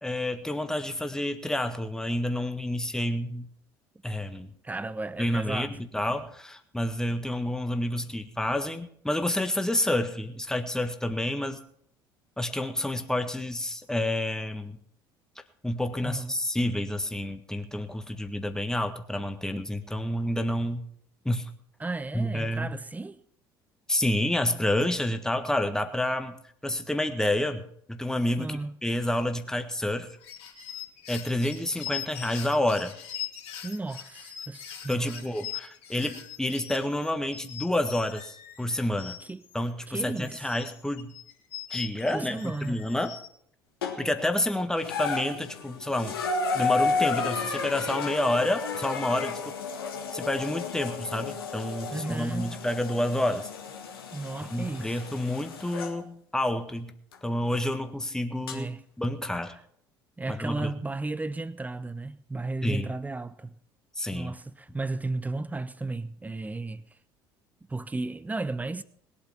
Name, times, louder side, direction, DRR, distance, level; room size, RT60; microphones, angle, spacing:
voice 1, 0.0-3.5 4.0-4.5 5.2-11.6 12.4-14.8 15.6-20.8 21.2-21.5 22.1-22.7 23.9-26.4 26.6-30.1 31.1-32.9 34.9-39.2 39.5-41.2 41.7-43.1 44.0-46.2 46.5-49.5 50.1-53.5 54.5-58.7 59.0-59.6 60.3-60.7 62.6-62.9 64.0-64.3, left 1 dB, 5° left, 1.6 m, -29 dB
voice 2, 4.6-5.7 16.0-16.4 21.8-23.2 28.4-28.7 33.6-35.3 39.3-39.4 39.9-40.5 42.1-42.8 51.9-52.5 54.1-55.0 58.5-58.8 60.2-63.6 64.1-66.9 67.7-68.8, right 2 dB, 15° right, 1.0 m, -34 dB
sound 1, 30.1-39.7 40.1-43.3, left 10 dB, 50° left, 2.9 m, -41 dB
sound 2, 43.8-44.3 44.8-56.0 57.1-57.2 58.5-58.6, left 4 dB, 75° left, 1.9 m, -32 dB
20.5 x 8.5 x 5.9 m
figure-of-eight pair, 60°, 12 cm